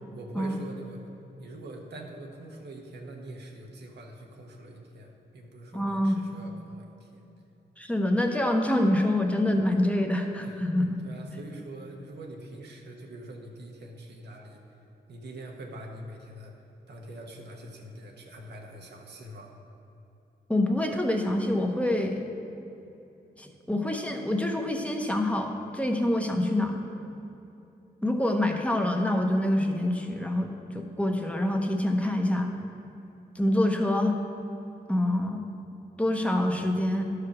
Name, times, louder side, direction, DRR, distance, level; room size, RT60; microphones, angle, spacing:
voice 1, 0.1-1.0 1.4-7.3 10.4-10.6 11.0-14.6 15.1-16.5 16.9-19.5, right 1 dB, 90° right, 1 dB, 1.1 m, -44 dB
voice 2, 5.7-6.2 7.8-10.9 20.5-22.2 23.4-26.8 28.0-32.5 33.3-34.1 34.9-35.4 36.0-37.0, left 1 dB, 10° left, 2 dB, 0.9 m, -26 dB
11.5 x 4.9 x 6.0 m, 2.9 s
cardioid pair, 75°, 17 cm